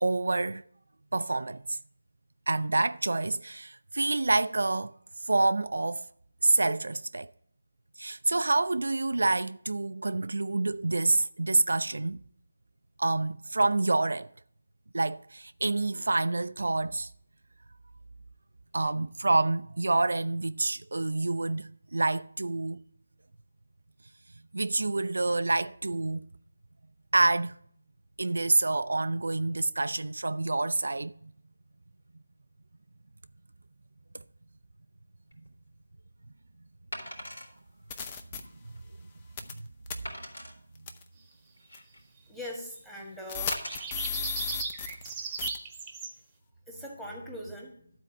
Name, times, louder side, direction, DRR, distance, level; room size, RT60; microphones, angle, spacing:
voice 1, 0.0-0.6 1.1-1.8 2.5-4.9 5.2-6.0 6.4-7.3 8.0-12.2 13.0-14.3 14.9-17.1 18.7-22.8 24.5-26.2 27.1-27.6 28.2-31.1 39.6-39.7, right 2 dB, 70° right, 0.3 m, -27 dB
Wood, 35.3-35.5 36.9-37.5 38.1-38.2 38.7-38.8 40.0-40.5 41.3-42.1 43.5-43.9 44.6-44.8, left 1 dB, 80° left, 3.2 m, -40 dB
sound 1, 37.3-37.4 37.9-38.4 39.4-39.6 39.9-40.0 40.9-41.0 41.7-41.8 43.3-45.1 45.4-45.6, left 7 dB, 25° left, 0.7 m, -34 dB
voice 2, 42.3-43.6 46.7-47.9, equal, 5° left, 1.7 m, -41 dB
sound 2, 43.5-46.1, right 5 dB, 15° right, 1.0 m, -37 dB
12.0 x 4.3 x 7.2 m
figure-of-eight pair, 160°, 0 cm